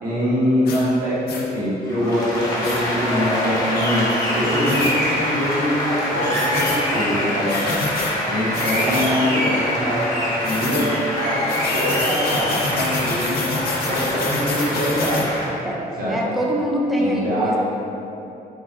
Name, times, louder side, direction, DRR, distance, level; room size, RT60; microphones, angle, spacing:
voice 1, 0.0-7.6 8.3-13.4 13.9-15.4 15.9-16.3 17.0-17.6, equal, 70° right, -8 dB, 1.2 m, -23 dB
sound 1, 0.6-0.8 1.3-1.4 2.6-2.8 4.6-4.9 6.3-6.8 7.5-8.1 8.5-9.1 10.4-10.9 11.5-15.3, left 3 dB, 85° left, 0.5 m, -27 dB
Applause, 1.9-15.5, equal, 25° left, 0.8 m, -24 dB
voice 2, 16.1-17.6, equal, ahead, -3 dB, 0.3 m, -23 dB
3.9 x 2.3 x 3.4 m, 2.8 s
cardioid pair, 145°, 16 cm